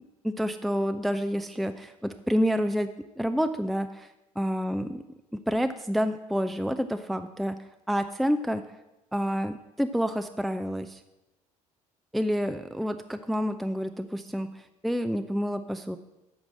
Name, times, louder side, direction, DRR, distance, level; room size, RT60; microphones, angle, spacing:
voice 1, 0.2-2.9 3.2-5.0 5.3-8.6 9.1-11.0 12.1-16.0, equal, ahead, 9 dB, 0.5 m, -29 dB
8.7 x 6.1 x 7.5 m, 0.97 s
figure-of-eight pair, 60°, 18 cm